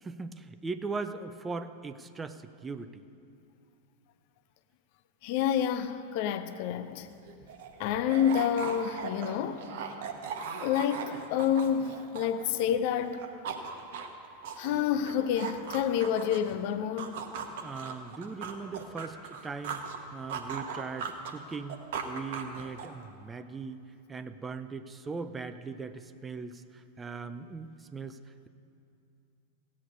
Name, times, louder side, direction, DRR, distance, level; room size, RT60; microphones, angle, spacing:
voice 1, 0.0-3.1 17.5-19.8 20.1-21.8 22.0-23.8 24.1-28.2, right 4 dB, 15° right, 0.5 m, -39 dB
voice 2, 5.2-7.1 7.8-9.7 10.6-13.3 14.6-17.2, left 9 dB, 45° left, 0.5 m, -28 dB
sound 1, 6.9-7.0 7.2-12.7 13.0-16.5 17.0-20.0 20.3-23.0, right 6 dB, 55° right, 1.0 m, -39 dB
16.0 x 8.6 x 5.3 m
figure-of-eight pair, 90°, 0 cm